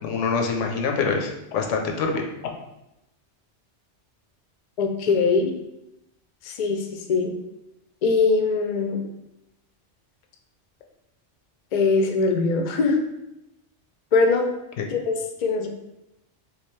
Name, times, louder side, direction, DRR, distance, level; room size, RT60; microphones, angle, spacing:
voice 1, 0.0-2.2 14.8-14.9, left 5 dB, 90° left, 2 dB, 0.9 m, -25 dB
voice 2, 4.8-5.5 6.4-7.3 8.0-9.0 11.7-13.0 14.1-14.5 14.9-15.1 15.4-15.7, left 4 dB, 65° left, 4 dB, 0.4 m, -21 dB
3.5 x 2.6 x 3.1 m, 0.88 s
omnidirectional pair, 1.2 m